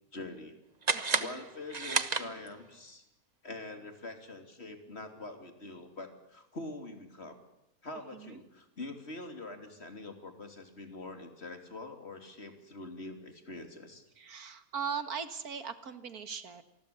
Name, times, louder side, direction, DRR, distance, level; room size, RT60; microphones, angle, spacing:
voice 1, 0.1-0.6 1.2-3.0 3.4-7.4 7.8-14.0, left 2 dB, 45° left, 7 dB, 3.4 m, -44 dB
sound 1, 0.8-2.8, right 4 dB, 30° right, 1.2 m, -32 dB
voice 2, 0.9-1.4 8.1-8.4 14.2-16.6, right 6 dB, 80° right, 11 dB, 2.2 m, -39 dB
27.5 x 20.5 x 7.0 m, 0.87 s
omnidirectional pair, 1.5 m